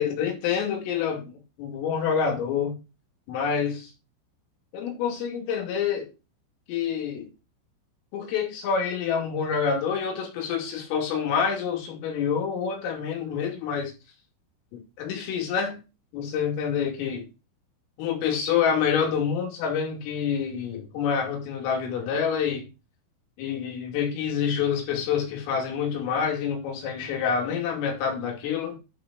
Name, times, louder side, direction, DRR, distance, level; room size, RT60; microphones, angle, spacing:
voice 1, 0.0-1.3 1.6-2.8 3.3-3.9 4.7-6.1 6.7-7.3 8.1-13.9 14.7-15.8 16.1-17.3 18.0-22.7 23.4-28.8, left 7 dB, 85° left, 5.2 m, -27 dB
11.0 x 5.3 x 5.1 m
omnidirectional pair, 5.8 m